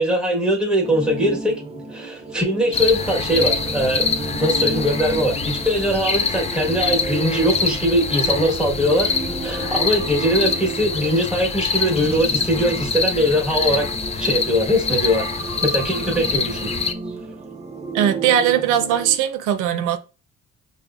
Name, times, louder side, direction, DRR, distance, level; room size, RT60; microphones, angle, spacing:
voice 1, 0.0-1.6 1.9-4.1 4.4-9.1 9.4-13.9 14.2-16.7, equal, 5° right, 1.2 m, -21 dB
sound 1, 0.8-19.2, right 3 dB, 20° right, 0.6 m, -32 dB
sound 2, 2.7-16.9, left 5 dB, 20° left, 0.4 m, -25 dB
voice 2, 17.9-20.0, right 9 dB, 85° right, 0.5 m, -19 dB
5.2 x 2.1 x 2.3 m
cardioid pair, 90°, 30 cm